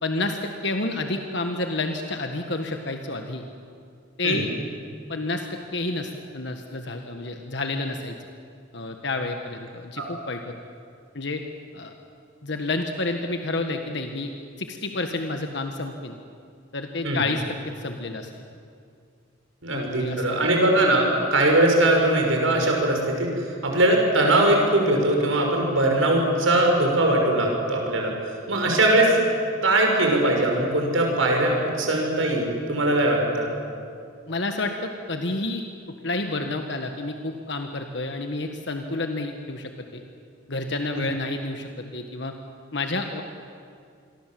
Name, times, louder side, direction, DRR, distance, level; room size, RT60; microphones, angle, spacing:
voice 1, 0.0-3.4 4.2-4.5 5.1-8.2 8.7-10.5 11.1-11.4 11.7-11.9 12.4-14.3 14.6-16.1 16.7-18.4 19.7-20.4 34.3-35.7 36.0-40.0 40.5-42.3 42.7-43.2, left 2 dB, 60° left, 5 dB, 1.5 m, -29 dB
voice 2, 19.6-28.1 28.5-29.2 29.6-33.5 41.0-41.1, right 1 dB, 90° right, 1 dB, 6.0 m, -21 dB
27.5 x 22.5 x 7.7 m, 2.3 s
head